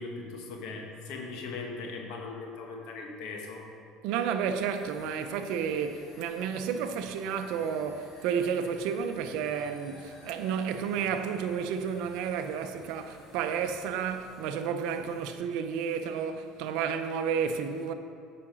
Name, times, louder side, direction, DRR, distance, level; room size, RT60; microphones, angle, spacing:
voice 1, 0.0-3.6, left 3 dB, 75° left, 1.4 m, -39 dB
voice 2, 4.0-17.9, right 7 dB, 75° right, 0.6 m, -31 dB
sound 1, 4.4-15.4 15.7-16.2, left 2 dB, 50° left, 2.0 m, -54 dB
8.5 x 5.1 x 6.2 m
supercardioid pair, 105°, 0 cm